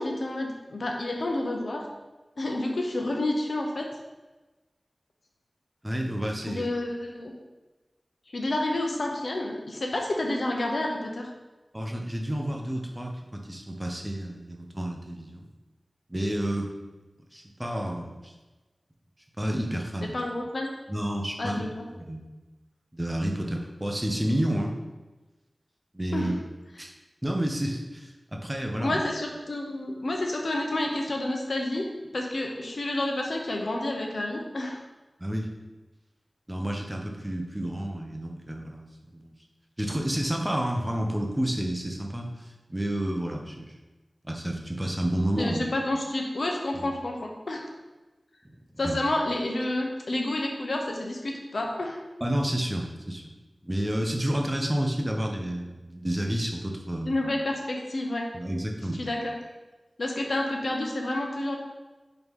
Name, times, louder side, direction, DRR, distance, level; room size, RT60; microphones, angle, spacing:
voice 1, 0.0-1.9 2.4-3.9 6.5-7.3 8.3-11.3 20.1-20.7 21.4-21.8 26.1-26.3 28.8-31.9 32.1-34.8 45.4-47.7 48.8-52.0 57.0-58.3 59.0-59.3 60.0-61.6, left 1 dB, 70° left, 1 dB, 0.9 m, -29 dB
voice 2, 5.8-6.7 11.7-15.4 16.1-16.7 17.3-18.3 19.4-20.2 20.9-22.3 22.9-24.7 25.9-26.3 26.8-26.9 27.2-29.0 35.2-35.5 36.5-39.3 39.8-43.8 44.2-45.6 46.7-46.9 48.7-49.0 52.2-53.3 53.6-57.2 58.3-59.1, right 1 dB, 15° right, 1 dB, 0.9 m, -30 dB
4.7 x 3.9 x 5.3 m, 1.2 s
wide cardioid pair, 70°, 0 cm